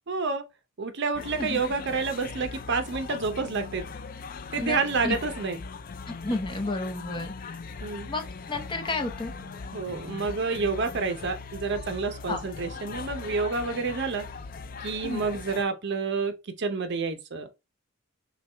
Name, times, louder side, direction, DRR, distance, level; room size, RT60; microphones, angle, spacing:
voice 1, 0.1-0.5 0.8-3.9 4.5-5.6 7.8-8.1 9.7-14.3 14.8-17.5, right 4 dB, 55° right, 0.7 m, -29 dB
sound 1, 1.1-15.6, left 4 dB, 45° left, 0.4 m, -40 dB
voice 2, 4.6-5.2 6.1-7.6 8.1-9.3 12.3-12.4 15.0-15.2, left 2 dB, 25° left, 0.8 m, -31 dB
5.8 x 2.3 x 3.3 m
head